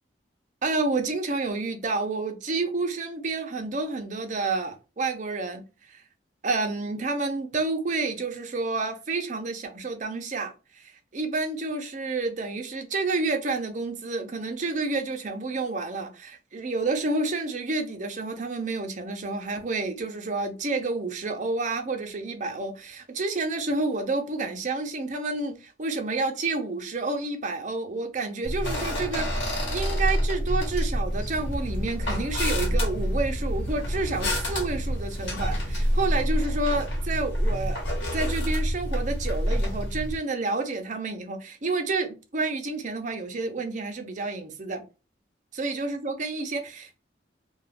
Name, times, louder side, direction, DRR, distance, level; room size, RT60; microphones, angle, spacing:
voice 1, 0.6-6.0 6.4-37.8 38.1-44.8 45.5-47.0, right 3 dB, 45° right, 0.6 m, -29 dB
sound 1, 28.4-40.2, equal, 90° left, 1.0 m, -27 dB
sound 2, 31.1-36.2, left 1 dB, 50° left, 0.8 m, -43 dB
2.3 x 2.3 x 3.3 m
head